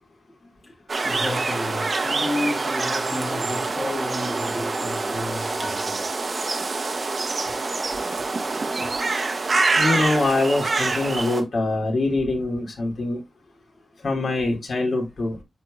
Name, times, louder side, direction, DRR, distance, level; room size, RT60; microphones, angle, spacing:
voice 1, 0.4-0.7 1.0-6.1 7.4-7.5 8.8-8.9, left 2 dB, 25° left, 2.2 m, -32 dB
sound 1, 0.9-11.4, right 3 dB, 40° right, 1.1 m, -26 dB
sound 2, 4.1-6.8 7.4-9.9, right 1 dB, 20° right, 2.3 m, -38 dB
voice 2, 9.8-13.2 14.0-15.4, left 2 dB, 60° left, 2.9 m, -24 dB
11.0 x 4.5 x 2.4 m
wide cardioid pair, 150°, 0 cm